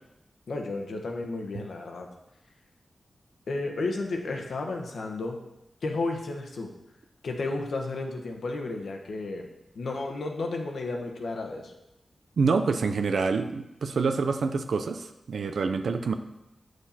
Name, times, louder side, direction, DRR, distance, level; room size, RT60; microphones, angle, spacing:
voice 1, 0.5-2.1 3.5-5.4 5.8-6.7 7.2-9.5 9.7-11.7, left 3 dB, 80° left, 2 dB, 1.3 m, -32 dB
voice 2, 12.4-16.1, right 4 dB, 80° right, 8 dB, 0.7 m, -26 dB
9.3 x 6.5 x 4.3 m, 0.89 s
wide cardioid pair, 85°, 0 cm